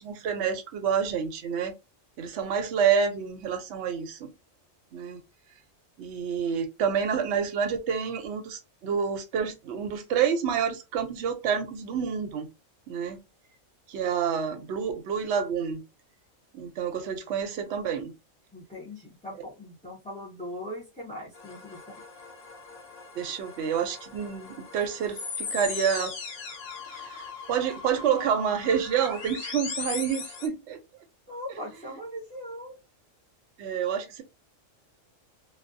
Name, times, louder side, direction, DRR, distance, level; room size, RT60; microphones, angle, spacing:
voice 1, 0.0-1.8 2.2-4.3 4.9-5.2 6.0-12.5 12.9-13.2 13.9-15.8 16.5-18.1 23.2-26.1 26.9-30.8 33.6-34.2, right 7 dB, 65° right, 0.8 m, -28 dB
voice 2, 18.5-21.9 31.3-32.8, left 1 dB, 10° left, 0.5 m, -40 dB
sound 1, 21.3-30.5, left 5 dB, 60° left, 0.8 m, -39 dB
2.3 x 2.3 x 2.5 m
omnidirectional pair, 1.3 m